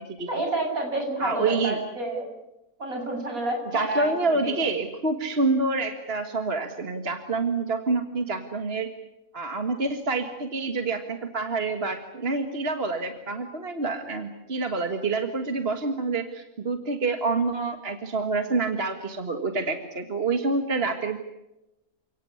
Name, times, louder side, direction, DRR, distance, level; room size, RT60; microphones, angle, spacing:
voice 1, 0.3-2.3 2.8-4.7, right 2 dB, 70° right, 2 dB, 7.7 m, -29 dB
voice 2, 1.2-1.8 3.7-8.9 9.3-21.2, right 3 dB, 40° right, 6 dB, 1.9 m, -27 dB
29.5 x 18.0 x 9.7 m, 0.94 s
omnidirectional pair, 1.6 m